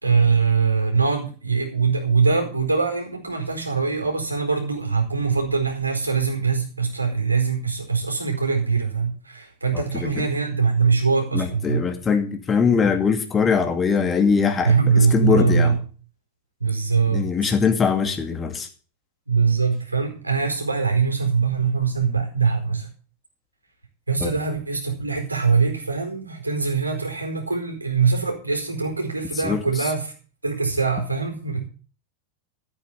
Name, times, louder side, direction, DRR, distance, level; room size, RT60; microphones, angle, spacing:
voice 1, 0.0-11.8 14.6-15.8 16.6-17.3 19.3-22.9 24.1-30.1 30.4-31.6, right 5 dB, 80° right, 3 dB, 4.6 m, -22 dB
voice 2, 9.7-10.3 11.3-15.8 17.1-18.7 24.2-24.3 29.4-29.9, left 6 dB, 20° left, 5 dB, 2.5 m, -22 dB
14.5 x 8.7 x 7.0 m, 0.38 s
figure-of-eight pair, 90°, 0 cm